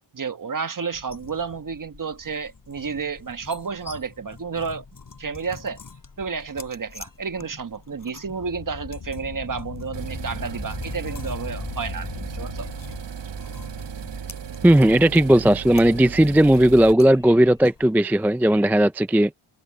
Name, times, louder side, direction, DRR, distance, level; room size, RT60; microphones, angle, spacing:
voice 1, 0.1-4.8 5.2-5.8 6.2-12.7, right 5 dB, 40° right, 1.3 m, -31 dB
sound 1, 0.9-17.9, left 4 dB, 40° left, 7.6 m, -46 dB
sound 2, 8.2-13.1, left 6 dB, 65° left, 8.0 m, -38 dB
sound 3, 9.9-16.9, right 7 dB, 60° right, 1.6 m, -36 dB
voice 2, 14.6-19.3, right 1 dB, 5° right, 0.4 m, -16 dB
wide cardioid pair, 110°, 49 cm